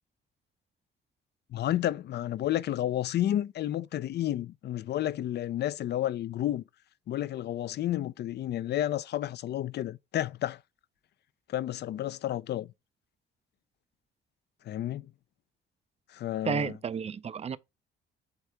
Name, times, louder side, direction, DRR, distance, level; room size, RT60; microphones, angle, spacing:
voice 1, 1.5-6.6 7.1-10.6 11.5-12.7 14.7-15.1 16.1-16.7, left 12 dB, 60° left, 0.4 m, -31 dB
voice 2, 16.4-17.6, right 7 dB, 30° right, 0.4 m, -32 dB
8.1 x 2.8 x 4.5 m
cardioid pair, 90°, 20 cm